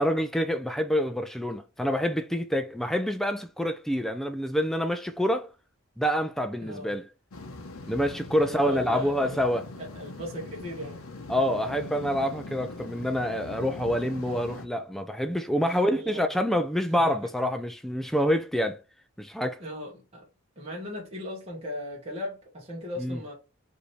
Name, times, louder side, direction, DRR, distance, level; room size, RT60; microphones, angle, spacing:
voice 1, 0.0-5.5 6.0-7.0 7.9-9.6 11.3-18.8 19.2-19.6 23.0-23.2, equal, ahead, 0.3 m, -27 dB
voice 2, 6.6-6.9 8.4-9.4 9.7-11.0 15.6-16.4 16.9-17.2 19.6-20.3 20.6-23.3, left 1 dB, 30° right, 1.1 m, -38 dB
sound 1, 7.3-14.7, left 2 dB, 85° left, 0.7 m, -42 dB
4.9 x 2.7 x 3.1 m
head